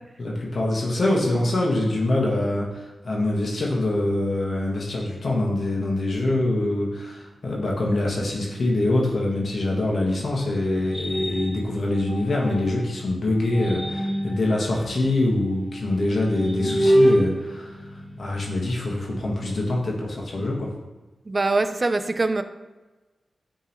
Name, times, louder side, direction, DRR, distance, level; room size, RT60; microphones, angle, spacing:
voice 1, 0.2-17.8 18.2-20.7, left 1 dB, 60° left, -2 dB, 1.5 m, -24 dB
sound 1, 10.0-12.9 13.4-18.6, equal, 15° left, 1.5 m, -27 dB
voice 2, 21.3-22.4, right 3 dB, 40° right, 10 dB, 0.4 m, -23 dB
8.7 x 3.6 x 3.0 m, 1.2 s
cardioid pair, 60°, 0 cm